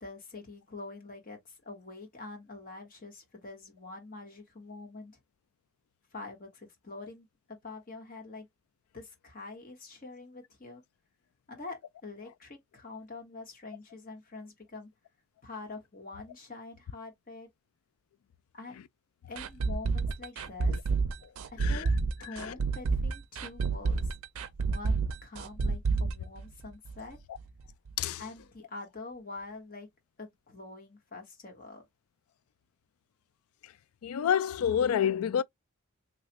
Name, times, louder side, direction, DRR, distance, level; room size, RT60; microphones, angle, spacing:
voice 1, 0.0-5.2 6.1-8.5 8.9-10.8 11.5-14.9 15.4-17.5 18.5-18.8 19.3-20.9 21.5-21.9 22.2-24.1 24.6-27.2 28.2-29.9 30.2-31.9, left 3 dB, 45° left, 1.3 m, -45 dB
sound 1, 19.4-27.1 27.4-27.5 27.9-28.0, right 4 dB, 80° right, 0.5 m, -29 dB
voice 2, 21.6-21.9 22.4-22.6 28.0-28.2 33.6-33.7 34.0-35.4, left 8 dB, 90° left, 0.3 m, -28 dB
3.2 x 2.4 x 2.9 m
head